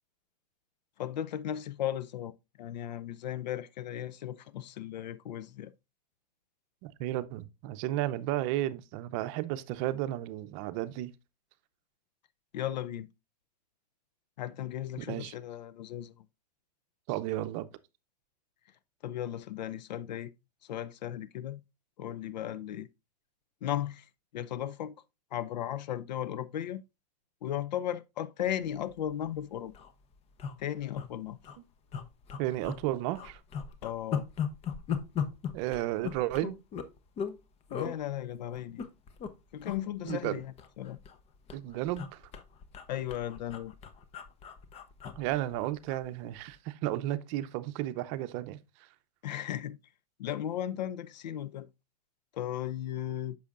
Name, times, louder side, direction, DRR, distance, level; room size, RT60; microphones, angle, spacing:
voice 1, 1.0-5.7 12.5-13.1 14.4-16.3 19.0-20.3 20.7-21.6 22.0-22.9 23.6-24.1 24.3-24.9 25.3-26.8 27.4-29.7 30.6-31.4 33.8-34.2 37.7-38.9 39.5-41.0 42.9-43.7 49.2-49.8 50.2-51.7 52.3-53.4, left 11 dB, 85° left, 0.5 m, -36 dB
voice 2, 6.8-11.1 15.0-15.3 17.1-17.7 32.4-33.4 35.5-36.6 39.5-39.6 40.0-40.4 41.5-42.2 45.2-48.9, right 15 dB, 50° right, 0.6 m, -33 dB
sound 1, 28.9-29.1 29.4-29.5 29.7-29.9 30.4-31.1 31.4-31.6 31.9-32.8 33.1-37.4 37.7-37.9 38.5-39.3 39.6-39.8 40.1-41.2 41.5-46.0 46.4-46.6, left 7 dB, 30° left, 0.8 m, -37 dB
8.2 x 6.3 x 2.4 m
hypercardioid pair, 125°, 21 cm